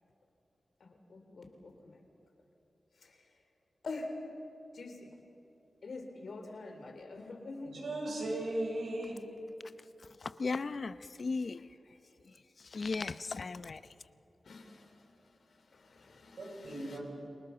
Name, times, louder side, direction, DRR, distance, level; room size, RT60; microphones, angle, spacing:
voice 1, 0.8-2.0 3.0-3.2 3.8-4.1 4.7-5.1 5.8-7.7 11.6-12.0 14.4-15.1 15.5-17.0, left 3 dB, 75° left, 3.4 m, -46 dB
voice 2, 7.6-9.2 16.4-17.0, right 1 dB, 85° right, 6.9 m, -37 dB
voice 3, 10.4-10.9 11.2-11.6 12.7-13.8, left 4 dB, 60° left, 0.7 m, -35 dB
29.5 x 18.5 x 7.0 m
cardioid pair, 65°, 0 cm